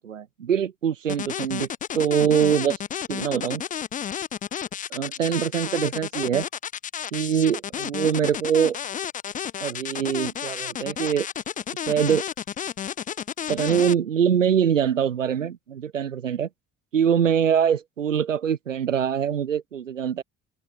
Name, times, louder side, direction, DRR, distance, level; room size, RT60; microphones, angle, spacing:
voice 1, 0.0-1.7 2.0-2.8 3.1-3.6 4.9-6.5 7.1-8.8 9.6-11.3 11.9-12.2 13.5-16.5 16.9-20.2, right 8 dB, 90° right, 0.6 m, -23 dB
sound 1, 1.1-13.9, left 9 dB, 20° left, 0.4 m, -31 dB
open air
figure-of-eight pair, 50°, 37 cm